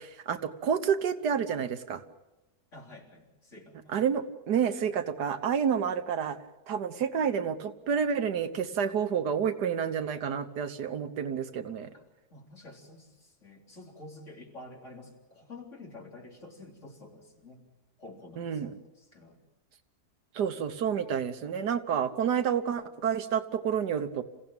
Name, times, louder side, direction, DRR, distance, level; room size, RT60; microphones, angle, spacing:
voice 1, 0.0-2.0 3.9-6.4 6.7-11.9 18.4-18.7 20.4-24.2, right 7 dB, 85° right, 10 dB, 1.7 m, -29 dB
voice 2, 2.7-4.0 11.9-12.0 12.3-17.6 18.0-19.4, left 2 dB, 45° left, 0 dB, 4.1 m, -49 dB
27.5 x 16.0 x 8.9 m, 1.0 s
omnidirectional pair, 1.7 m